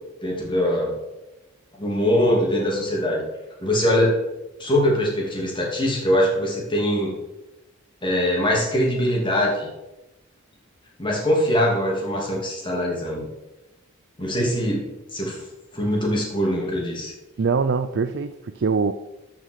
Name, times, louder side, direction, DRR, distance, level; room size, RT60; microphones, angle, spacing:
voice 1, 0.2-0.9 1.8-3.2 3.6-4.2 4.6-7.2 8.0-9.7 11.0-13.3 14.2-15.4 15.7-17.1, equal, 25° left, -2 dB, 2.8 m, -22 dB
voice 2, 17.4-18.9, right 5 dB, 60° right, 9 dB, 0.5 m, -23 dB
13.0 x 5.8 x 4.7 m, 0.98 s
head